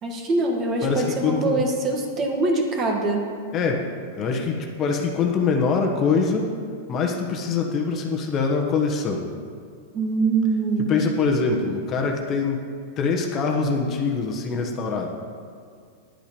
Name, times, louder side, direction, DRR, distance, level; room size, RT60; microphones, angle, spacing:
voice 1, 0.0-3.3 9.9-10.9, right 3 dB, 30° right, 2 dB, 1.7 m, -23 dB
voice 2, 0.8-1.6 3.5-3.9 4.1-6.5 6.9-9.3 10.9-12.6 13.0-15.1, left 4 dB, 30° left, 2 dB, 1.2 m, -24 dB
10.5 x 8.4 x 5.3 m, 2.2 s
hypercardioid pair, 130°, 0 cm